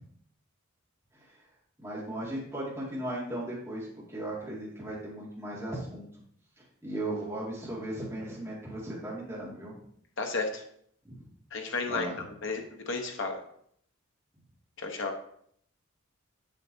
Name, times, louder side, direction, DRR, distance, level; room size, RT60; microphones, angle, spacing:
voice 1, 1.8-6.1 6.8-9.8 11.0-11.2 11.9-12.2, right 1 dB, 10° right, -7 dB, 2.2 m, -37 dB
voice 2, 10.2-10.6 11.5-12.1 12.4-13.4 14.8-15.1, left 3 dB, 60° left, 3 dB, 0.9 m, -32 dB
7.0 x 6.7 x 2.7 m, 0.66 s
head